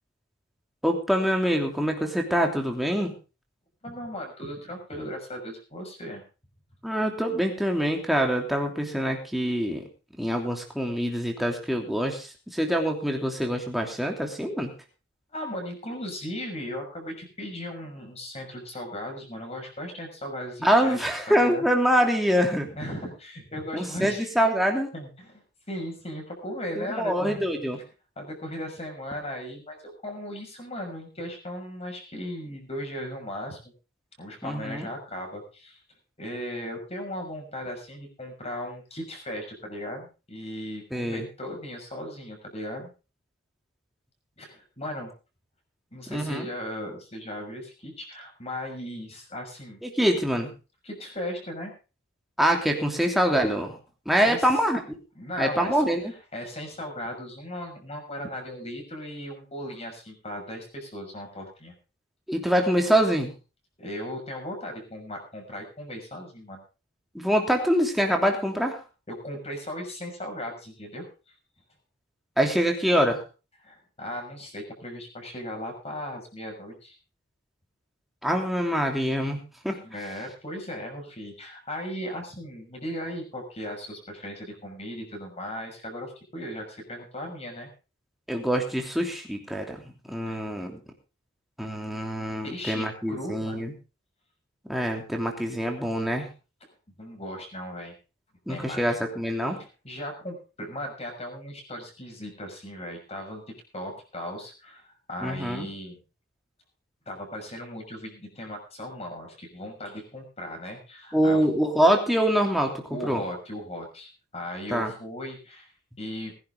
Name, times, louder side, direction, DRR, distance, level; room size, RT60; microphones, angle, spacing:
voice 1, 0.8-3.1 6.8-9.9 10.2-14.7 20.6-22.7 23.7-24.9 26.8-27.8 34.4-34.9 40.9-41.3 46.1-46.5 49.8-50.5 52.4-53.8 54.0-55.0 55.4-56.0 62.3-63.3 67.1-68.8 72.4-73.2 78.2-79.8 88.3-89.8 90.1-90.8 91.6-93.7 94.7-96.3 98.5-99.6 105.2-105.7 111.1-113.2 114.7-114.9, equal, ahead, 1 dB, 3.0 m, -25 dB
voice 2, 3.8-6.2 15.3-21.7 22.6-24.4 24.9-27.4 28.2-33.6 34.2-35.8 36.2-42.9 44.4-45.1 45.9-49.8 50.8-51.7 54.1-54.5 55.1-61.7 63.8-66.6 69.1-71.1 73.6-77.0 79.8-87.7 90.2-90.4 92.4-93.6 96.6-96.7 97.0-97.9 98.5-98.8 99.6-103.4 103.7-106.0 107.1-111.4 112.9-115.7 116.0-116.3, equal, 30° left, 2 dB, 6.3 m, -37 dB
21.0 x 10.5 x 3.8 m, 0.33 s
head